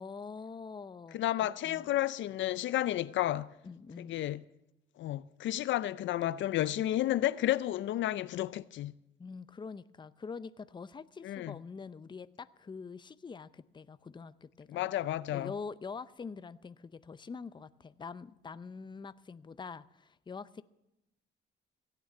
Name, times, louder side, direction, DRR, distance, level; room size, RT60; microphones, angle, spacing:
voice 1, 0.0-1.2 1.6-1.9 3.6-4.2 9.2-14.8 15.3-20.6, left 5 dB, 25° left, 0.6 m, -45 dB
voice 2, 1.1-3.5 4.0-4.4 5.0-8.9 11.2-11.6 14.7-15.5, left 13 dB, 70° left, 0.5 m, -31 dB
16.5 x 9.1 x 7.2 m
cardioid pair, 90°, 20 cm